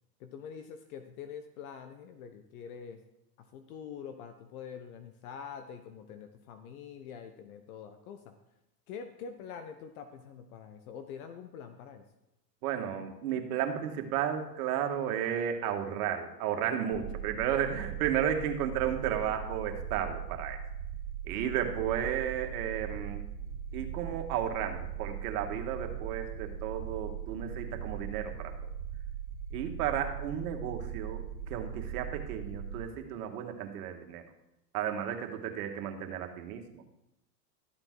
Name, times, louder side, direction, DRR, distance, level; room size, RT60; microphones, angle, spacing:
voice 1, 0.2-3.0 3.4-8.3 8.9-12.0, left 7 dB, 60° left, 8 dB, 1.1 m, -45 dB
voice 2, 12.6-20.6 21.3-23.2 23.7-28.5 29.5-34.2 34.7-36.8, right 9 dB, 60° right, 5 dB, 1.9 m, -33 dB
sound 1, 16.9-32.8, right 8 dB, 35° right, 1.9 m, -40 dB
13.5 x 7.8 x 4.6 m, 0.89 s
hypercardioid pair, 105°, 48 cm